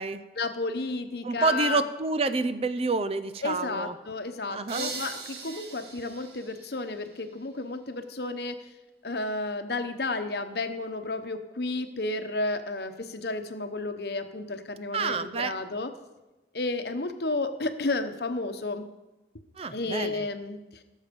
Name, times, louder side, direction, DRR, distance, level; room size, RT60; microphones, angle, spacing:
voice 1, 0.4-1.8 3.4-8.7 9.0-15.9 16.5-18.9 19.7-20.8, left 2 dB, 60° left, 8 dB, 1.0 m, -32 dB
voice 2, 1.2-3.9 4.5-4.9 14.9-15.5 19.6-20.3, right 3 dB, 35° right, 12 dB, 0.5 m, -28 dB
sound 1, 4.7-7.5, right 4 dB, 65° right, 1.9 m, -40 dB
18.0 x 7.3 x 5.3 m, 1.1 s
head